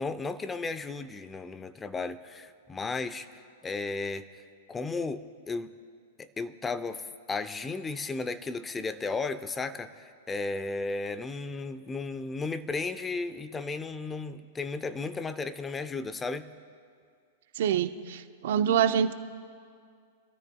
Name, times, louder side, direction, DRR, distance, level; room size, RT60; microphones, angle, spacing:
voice 1, 0.0-4.4 4.7-5.7 6.2-16.5, left 3 dB, 15° left, 12 dB, 0.6 m, -34 dB
voice 2, 17.6-19.1, right 9 dB, 65° right, 10 dB, 0.6 m, -26 dB
24.5 x 13.0 x 2.3 m, 2.2 s
hypercardioid pair, 110°, 0 cm